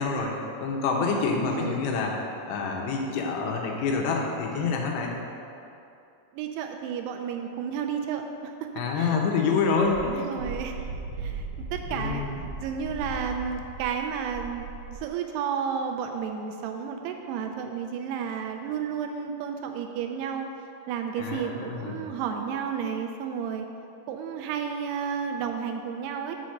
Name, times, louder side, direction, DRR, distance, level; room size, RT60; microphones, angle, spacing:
voice 1, 0.0-2.1 2.5-5.1 8.8-10.2 11.9-12.3 21.2-22.0, left 4 dB, 85° left, 0 dB, 3.1 m, -27 dB
voice 2, 1.4-1.8 6.3-8.7 9.0-9.2 10.0-10.8 11.2-11.5 11.7-12.2 12.6-20.5 20.9-23.7 24.1-26.4, right 7 dB, 85° right, 5 dB, 2.5 m, -32 dB
Wind, 9.8-15.1, right 3 dB, 65° right, 1.6 m, -37 dB
5.9 x 5.8 x 6.4 m, 2.7 s
omnidirectional pair, 4.9 m